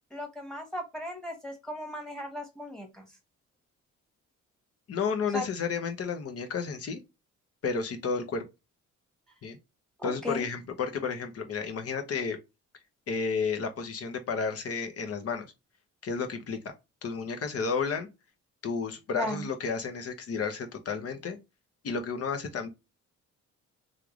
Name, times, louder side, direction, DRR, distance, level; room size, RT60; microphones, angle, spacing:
voice 1, 0.1-3.1 5.3-5.4 10.0-10.4 19.2-19.5, equal, ahead, 1.4 m, -36 dB
voice 2, 4.9-7.0 7.6-8.4 9.4-9.6 10.0-12.4 13.1-15.5 16.0-16.6 17.0-18.1 18.6-21.4 21.8-22.7, left 5 dB, 50° left, 0.9 m, -32 dB
3.3 x 2.5 x 3.0 m
cardioid pair, 90°, 30 cm